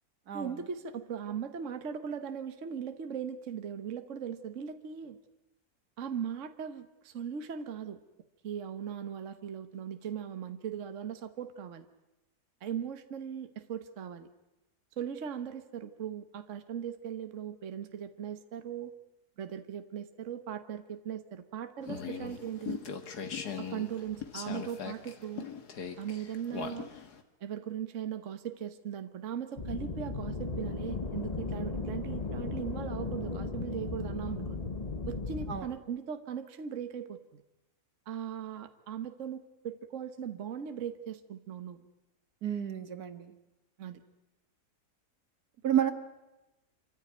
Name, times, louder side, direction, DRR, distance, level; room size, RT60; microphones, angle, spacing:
voice 1, 0.3-5.2 6.0-8.0 8.4-11.8 12.6-14.3 15.0-18.9 19.4-22.8 23.6-25.5 26.0-26.9 27.4-34.6 35.1-37.4 38.1-41.8 43.8-44.0, right 8 dB, 50° right, 8 dB, 1.4 m, -39 dB
sound 1, 21.8-27.2, left 7 dB, 75° left, 2.2 m, -40 dB
sound 2, 29.6-35.6, left 3 dB, 25° left, 1.3 m, -36 dB
voice 2, 42.4-43.3 45.6-45.9, right 10 dB, 70° right, 9 dB, 1.8 m, -30 dB
26.5 x 14.5 x 9.4 m, 1.0 s
omnidirectional pair, 1.7 m